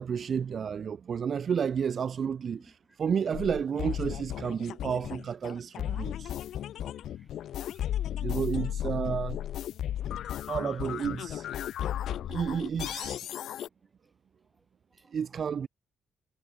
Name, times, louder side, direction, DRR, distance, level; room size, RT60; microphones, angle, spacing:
voice 1, 0.0-6.3 8.2-9.4 10.5-11.5 12.2-13.2 15.1-15.7, right 7 dB, 50° right, 0.7 m, -31 dB
voice 2, 2.5-3.0 4.4-4.5 5.0-5.1 5.5-8.3 10.0-10.8 13.0-13.4 14.0-14.1 14.5-14.7 15.0-15.2, right 1 dB, 10° right, 5.2 m, -64 dB
sound 1, 3.3-13.7, left 11 dB, 75° left, 2.2 m, -35 dB
cardioid pair, 90°, 0 cm